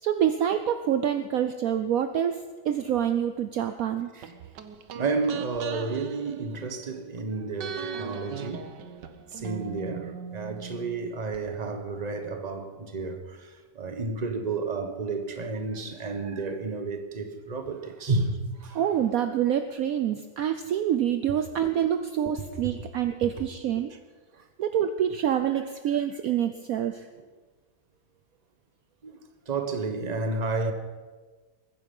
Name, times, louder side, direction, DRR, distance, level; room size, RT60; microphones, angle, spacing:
voice 1, 0.0-4.1 18.7-23.9 24.6-27.1, right 10 dB, 65° right, 1.0 m, -26 dB
sound 1, 4.2-7.2 7.6-11.4 11.7-11.8, right 6 dB, 85° right, 1.6 m, -40 dB
voice 2, 4.9-8.7 9.3-18.8 21.6-21.7 29.0-29.2 29.5-30.7, right 3 dB, 25° right, 1.2 m, -31 dB
22.0 x 9.9 x 5.5 m
omnidirectional pair, 1.8 m